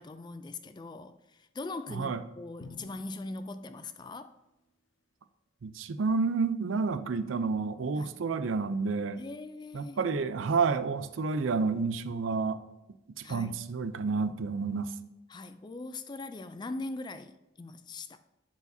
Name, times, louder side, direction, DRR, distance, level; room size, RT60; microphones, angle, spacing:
voice 1, 0.0-4.3 8.0-8.1 9.2-10.0 13.2-13.6 15.3-18.2, left 2 dB, 20° left, 0.3 m, -41 dB
voice 2, 1.9-2.2 5.6-9.2 9.7-12.6 13.2-14.9, right 4 dB, 80° right, 0.5 m, -30 dB
Drum, 2.6-4.6, left 3 dB, 75° left, 0.7 m, -52 dB
10.5 x 4.8 x 2.7 m
head